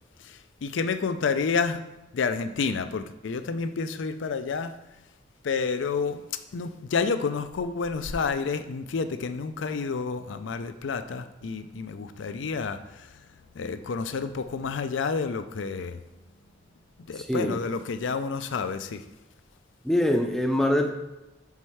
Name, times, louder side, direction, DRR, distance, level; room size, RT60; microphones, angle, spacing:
voice 1, 0.2-1.8 2.1-4.7 5.4-6.2 6.5-13.2 13.5-16.0 17.1-19.0, left 5 dB, 75° left, 10 dB, 0.4 m, -29 dB
voice 2, 17.2-17.6 19.8-20.9, left 1 dB, ahead, 4 dB, 0.5 m, -24 dB
4.8 x 4.4 x 5.6 m, 0.97 s
head